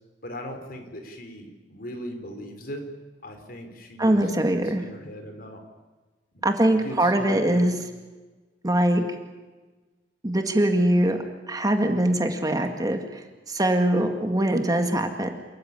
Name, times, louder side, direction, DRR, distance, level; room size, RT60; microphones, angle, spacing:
voice 1, 0.2-2.8 3.2-5.6 6.3-6.5 6.8-7.7, equal, 55° left, 5 dB, 4.2 m, -39 dB
voice 2, 4.0-4.8 6.4-7.8 8.6-9.0 10.2-13.2 13.5-15.3, right 1 dB, 20° right, 5 dB, 2.0 m, -22 dB
28.0 x 14.5 x 9.8 m, 1.2 s
head